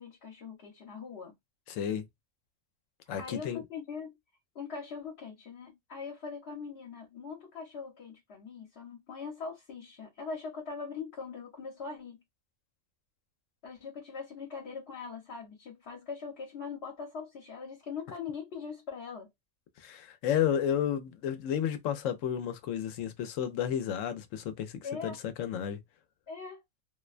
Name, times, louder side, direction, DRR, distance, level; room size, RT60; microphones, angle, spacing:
voice 1, 0.0-1.3 3.2-4.2 4.5-12.2 13.6-19.3 24.8-25.2 26.3-26.6, left 5 dB, 60° left, 1.0 m, -41 dB
voice 2, 1.7-2.1 3.1-3.6 19.8-25.8, left 9 dB, 85° left, 0.9 m, -32 dB
2.5 x 2.1 x 2.3 m
omnidirectional pair, 1.3 m